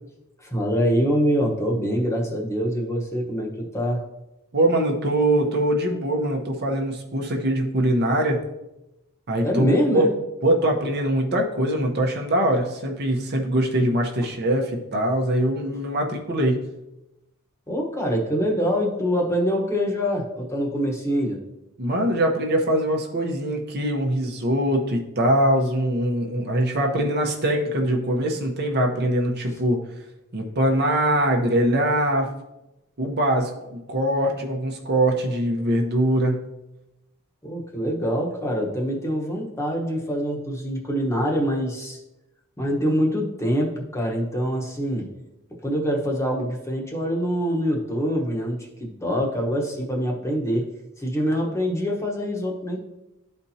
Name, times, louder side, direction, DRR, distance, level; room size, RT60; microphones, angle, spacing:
voice 1, 0.4-4.0 9.4-10.1 17.7-21.4 37.4-42.0 42.6-45.1 45.6-50.7 51.0-52.8, equal, 15° left, -1 dB, 1.0 m, -25 dB
voice 2, 4.5-8.4 9.3-10.1 10.4-16.6 21.8-29.8 30.3-32.3 33.0-36.4, right 1 dB, 50° right, 1 dB, 0.9 m, -22 dB
12.0 x 4.3 x 2.8 m, 0.95 s
head